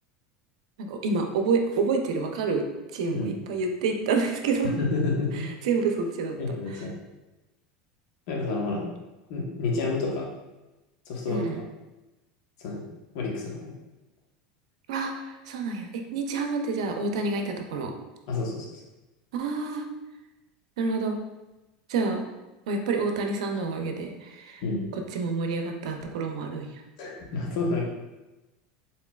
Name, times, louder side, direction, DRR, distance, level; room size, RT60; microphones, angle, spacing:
voice 1, 0.8-2.6 2.9-4.7 5.3-6.4 6.7-6.8 11.3-11.6 14.9-17.9 19.3-19.8 20.8-21.2 21.9-22.2 22.7-24.6 25.1-26.8, right 4 dB, 85° right, 4 dB, 0.6 m, -28 dB
voice 2, 4.8-5.4 6.4-6.9 8.3-8.9 9.3-10.3 11.1-11.5 12.6-12.8 13.1-13.7 18.3-18.7 24.6-24.9 27.0-27.9, left 3 dB, 70° left, -2 dB, 1.2 m, -29 dB
4.4 x 3.7 x 2.4 m, 1.0 s
supercardioid pair, 130°, 3 cm